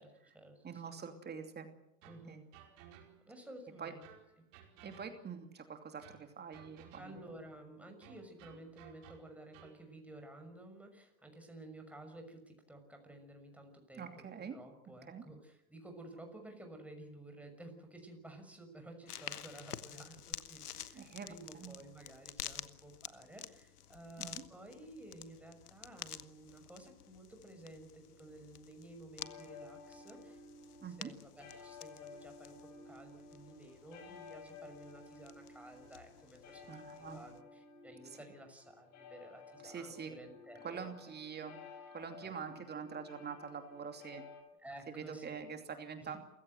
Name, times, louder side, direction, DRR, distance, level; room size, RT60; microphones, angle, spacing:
voice 1, 0.0-1.0 2.0-2.4 3.3-4.1 6.9-14.1 14.5-30.4 30.9-32.6 32.8-40.9 42.2-42.3 44.6-45.4 46.0-46.2, right 1 dB, 5° right, 4 dB, 6.2 m, -53 dB
voice 2, 0.6-1.7 2.3-2.4 3.8-3.9 4.8-7.2 14.0-14.6 15.1-15.2 20.9-21.7 24.2-24.4 30.8-31.1 36.7-37.2 39.6-40.1 40.6-41.6 41.9-44.2 44.9-46.2, right 6 dB, 20° right, 6 dB, 2.7 m, -45 dB
sound 1, 2.0-3.4 4.0-5.5 6.0-7.4 8.0-9.9, right 9 dB, 60° right, 4.9 m, -59 dB
sound 2, 19.1-37.4, left 10 dB, 85° left, 1.3 m, -51 dB
sound 3, 29.2-44.4, left 4 dB, 40° left, 5.8 m, -55 dB
28.5 x 16.0 x 8.0 m, 0.84 s
hypercardioid pair, 105°, 44 cm